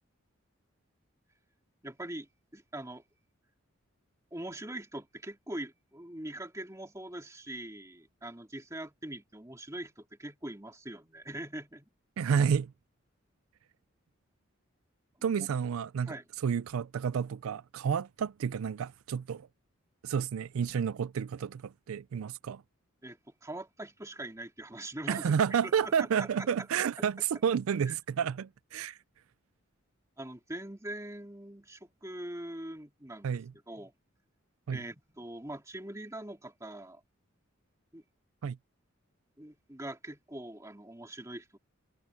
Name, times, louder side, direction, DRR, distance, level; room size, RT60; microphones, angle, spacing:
voice 1, 1.8-3.0 4.3-11.9 15.4-15.5 16.0-16.2 23.0-25.3 25.6-26.5 27.9-28.0 30.2-33.9 34.7-37.0 37.9-38.0 39.4-41.6, right 1 dB, 15° right, 2.4 m, -42 dB
voice 2, 12.2-12.7 15.2-16.2 16.4-19.5 20.0-22.6 25.1-29.0 33.2-33.5 34.7-34.8 38.4-38.6, right 7 dB, 80° right, 0.4 m, -30 dB
head